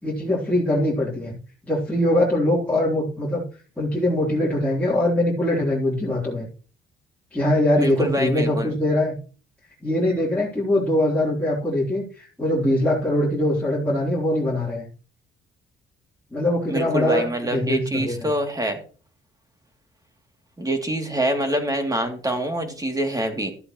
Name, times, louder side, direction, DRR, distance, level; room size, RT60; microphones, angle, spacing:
voice 1, 0.0-1.4 1.7-3.4 3.8-6.5 7.3-9.1 9.8-14.8 16.3-17.2 17.5-18.3, left 1 dB, 5° left, -6 dB, 3.5 m, -22 dB
voice 2, 7.8-8.8 16.7-18.8 20.6-23.5, right 1 dB, 20° right, 4 dB, 2.8 m, -25 dB
13.0 x 8.4 x 3.1 m, 0.38 s
cardioid pair, 90°, 20 cm